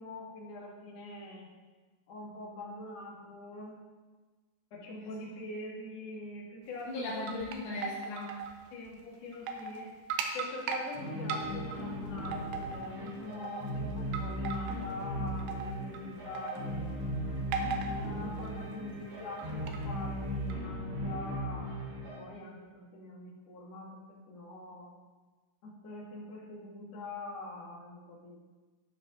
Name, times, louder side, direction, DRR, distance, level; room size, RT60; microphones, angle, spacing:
voice 1, 0.0-1.5 2.1-3.8 4.7-7.4 8.7-9.9 10.3-17.0 18.0-24.9 25.6-28.4, left 2 dB, 55° left, -4 dB, 2.2 m, -44 dB
voice 2, 6.9-8.4, left 2 dB, 70° left, -5 dB, 1.9 m, -38 dB
sound 1, 7.0-8.6 8.9-9.0 9.3-9.8 10.1-10.9 11.3-11.8 12.2-13.1 13.4-13.7 14.1-14.9 15.4-16.0 16.4-16.8 17.5-18.1 18.4-18.7 19.4-19.8 20.5-20.6, right 5 dB, 80° right, 2.2 m, -37 dB
sound 2, 10.9-22.2, equal, 65° right, 1.3 m, -37 dB
12.5 x 5.2 x 3.8 m, 1.3 s
omnidirectional pair, 4.7 m